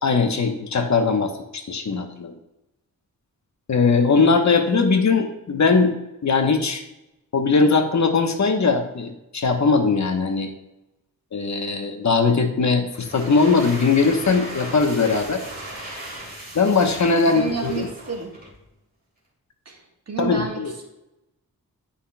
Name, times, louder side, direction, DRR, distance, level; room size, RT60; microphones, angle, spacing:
voice 1, 0.0-2.3 3.7-6.0 6.2-6.8 7.3-10.5 11.3-15.4 16.5-17.9 20.2-20.7, left 4 dB, 50° left, 5 dB, 1.0 m, -20 dB
sound 1, 12.9-18.6, right 1 dB, 25° right, 2.6 m, -37 dB
voice 2, 17.2-18.3 19.6-20.8, right 5 dB, 45° right, 1 dB, 1.7 m, -31 dB
11.0 x 5.8 x 2.3 m, 0.91 s
wide cardioid pair, 90°, 35 cm